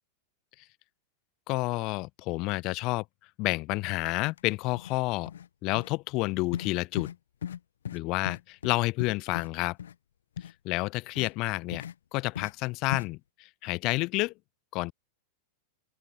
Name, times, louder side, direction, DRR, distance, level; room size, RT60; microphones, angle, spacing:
voice 1, 1.5-3.0 3.4-5.3 5.6-7.1 7.9-9.8 10.6-11.8 12.1-14.3 14.7-14.9, left 23 dB, 50° left, 0.8 m, -29 dB
sound 1, 4.3-4.4 4.7-5.0 5.3-5.5 5.8-5.9 6.5-6.7 7.0-7.2 7.4-7.6 7.9-8.0 8.3-9.5 9.8-9.9 10.4-10.5 11.2-11.3 11.7-11.9 12.4-12.5 12.9-13.1, left 9 dB, 75° left, 0.9 m, -37 dB
open air
hypercardioid pair, 100°, 0 cm